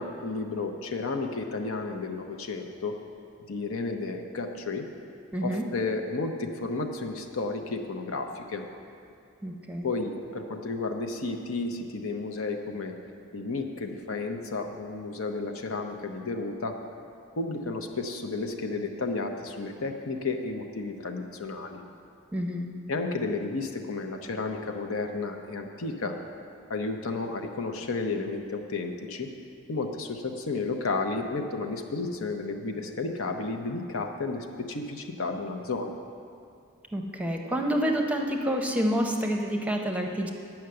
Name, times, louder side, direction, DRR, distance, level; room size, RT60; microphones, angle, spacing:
voice 1, 0.0-3.0 3.5-4.9 5.4-8.6 9.8-12.9 13.3-16.8 17.4-21.8 22.9-26.2 26.7-29.3 29.7-36.0, left 3 dB, 70° left, 4 dB, 0.8 m, -32 dB
voice 2, 5.3-5.7 9.4-9.9 22.3-22.7 36.9-40.3, equal, 5° right, 2 dB, 0.7 m, -28 dB
9.8 x 5.8 x 7.7 m, 2.4 s
head